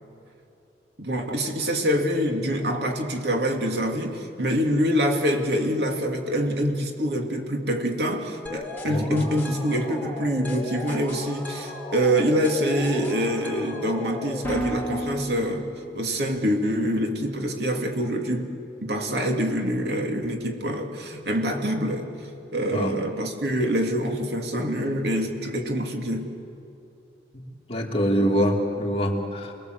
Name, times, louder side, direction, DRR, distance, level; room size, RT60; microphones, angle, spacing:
voice 1, 1.0-15.7 15.9-18.5 18.8-22.1 22.5-26.3, equal, 70° right, 3 dB, 2.6 m, -25 dB
sound 1, 8.5-16.2, left 1 dB, 10° left, 3.9 m, -35 dB
voice 2, 8.9-9.2 22.7-23.0 27.7-29.5, equal, 35° left, 0 dB, 2.8 m, -24 dB
28.5 x 21.5 x 8.0 m, 2.8 s
head